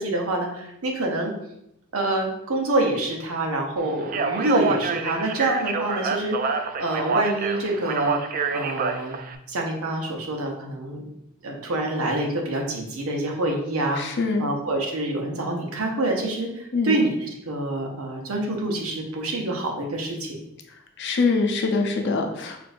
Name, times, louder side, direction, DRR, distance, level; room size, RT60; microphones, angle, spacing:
voice 1, 0.0-1.3 1.9-8.2 8.5-9.1 9.5-11.0 11.4-17.2 17.5-20.4, right 1 dB, 85° right, 1 dB, 0.8 m, -26 dB
Speech, 4.0-9.4, right 5 dB, 40° right, 0.3 m, -27 dB
voice 2, 14.0-14.5 16.7-17.0 21.0-22.6, left 4 dB, 55° left, 4 dB, 0.5 m, -24 dB
6.0 x 2.6 x 2.5 m, 0.80 s
head